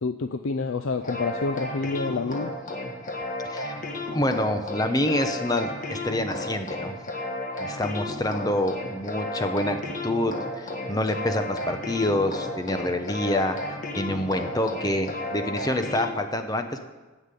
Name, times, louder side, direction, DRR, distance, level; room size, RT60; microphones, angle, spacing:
voice 1, 0.0-2.5, left 3 dB, 70° left, 8 dB, 0.5 m, -28 dB
sound 1, 1.0-16.1, left 1 dB, 40° left, 1.5 m, -33 dB
voice 2, 3.4-3.8 4.1-7.0 7.6-16.8, left 1 dB, 20° left, 7 dB, 0.8 m, -27 dB
10.0 x 7.3 x 8.4 m, 1.2 s
head